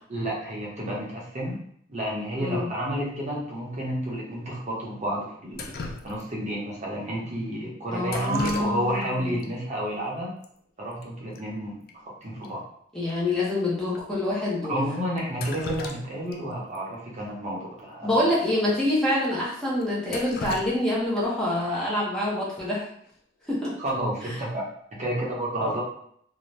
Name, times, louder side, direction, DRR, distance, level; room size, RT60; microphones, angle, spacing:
voice 1, 0.1-1.6 1.9-5.7 6.0-10.3 10.8-11.8 12.2-12.6 14.7-18.3 23.8-24.6 25.0-25.8, right 1 dB, 35° right, -4 dB, 0.7 m, -30 dB
Drip, 5.5-6.5 8.0-9.1 9.4-9.5 10.4-10.5 10.8-11.0 11.3-11.4 11.9-12.0 12.4-12.5 13.1-13.2 13.9-14.0 15.2-16.4 16.7-16.8 18.2-18.3 18.7-18.8 19.2-19.3 19.8-21.4 23.4-23.7 24.1-24.5, left 3 dB, 50° left, 0.4 m, -38 dB
voice 2, 7.9-9.4 12.9-14.8 18.0-22.9 23.5-23.7 25.6-25.7, left 1 dB, 5° left, -7 dB, 0.6 m, -26 dB
2.6 x 2.1 x 3.1 m, 0.66 s
head